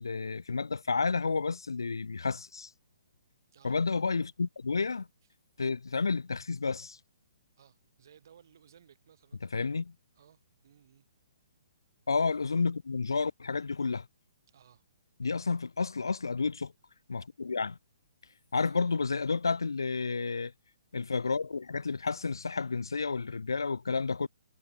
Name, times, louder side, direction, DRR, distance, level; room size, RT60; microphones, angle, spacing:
voice 1, 0.0-2.7 3.6-5.1 5.6-7.0 9.5-9.9 12.1-14.1 15.2-16.7 17.1-17.8 18.5-20.5 20.9-24.3, left 4 dB, 80° left, 0.9 m, -31 dB
voice 2, 3.5-3.9 7.6-9.4 10.2-11.1 14.5-14.8 18.5-19.0, right 9 dB, 55° right, 3.9 m, -60 dB
figure-of-eight pair, 130°, 2 cm